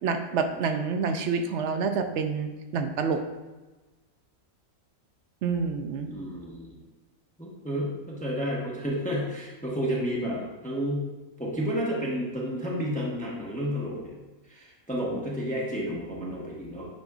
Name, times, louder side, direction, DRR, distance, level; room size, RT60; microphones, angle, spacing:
voice 1, 0.0-3.2 5.4-6.1, right 5 dB, 65° right, 7 dB, 0.8 m, -28 dB
voice 2, 6.0-6.8 7.4-11.1 11.4-14.2 14.5-16.9, equal, 5° left, -5 dB, 1.0 m, -31 dB
9.0 x 5.2 x 2.4 m, 1.2 s
omnidirectional pair, 1.5 m